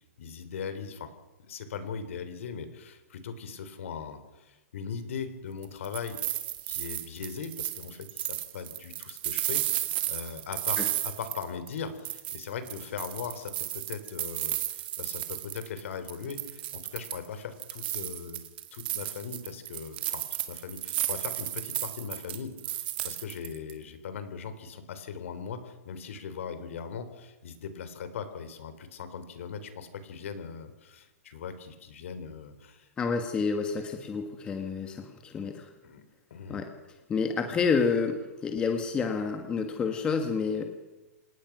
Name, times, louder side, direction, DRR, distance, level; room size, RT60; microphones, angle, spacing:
voice 1, 0.2-1.1 1.4-6.2 6.6-9.6 9.9-18.4 18.7-32.9 35.8-36.0 36.3-36.6, left 6 dB, 55° left, 10 dB, 3.5 m, -39 dB
sound 1, 5.6-11.8 12.0-15.8 16.1-17.3 17.6-23.7, right 14 dB, 40° right, 2.1 m, -33 dB
voice 2, 33.0-35.7 36.5-36.7 37.1-40.6, left 5 dB, 10° left, 5 dB, 1.3 m, -29 dB
27.0 x 18.5 x 6.0 m, 1.1 s
hypercardioid pair, 170°, 8 cm